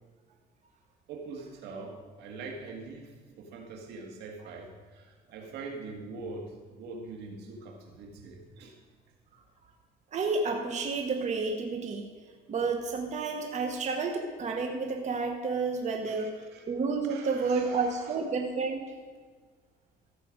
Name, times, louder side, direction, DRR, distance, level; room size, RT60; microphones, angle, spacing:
voice 1, 1.1-8.8 16.1-16.7 17.0-18.2, right 3 dB, 85° right, 2 dB, 1.9 m, -43 dB
voice 2, 10.1-12.1 12.5-16.3 16.7-18.9, right 4 dB, 45° right, 3 dB, 1.1 m, -30 dB
14.0 x 6.7 x 5.1 m, 1.5 s
cardioid pair, 110°, 17 cm